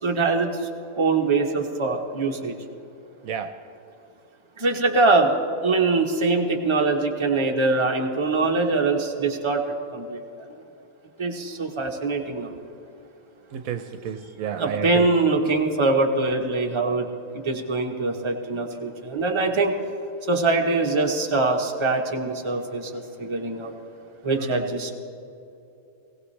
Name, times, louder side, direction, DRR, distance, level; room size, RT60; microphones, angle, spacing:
voice 1, 0.0-0.5 1.0-2.5 4.6-5.3 5.6-10.2 11.2-12.5 14.6-17.1 17.4-19.7 20.3-23.7 24.2-24.9, right 3 dB, 20° right, 1 dB, 1.1 m, -23 dB
voice 2, 3.2-3.6 13.5-15.1 24.4-24.7, right 8 dB, 75° right, 8 dB, 1.1 m, -31 dB
20.0 x 16.5 x 3.3 m, 2.8 s
omnidirectional pair, 1.5 m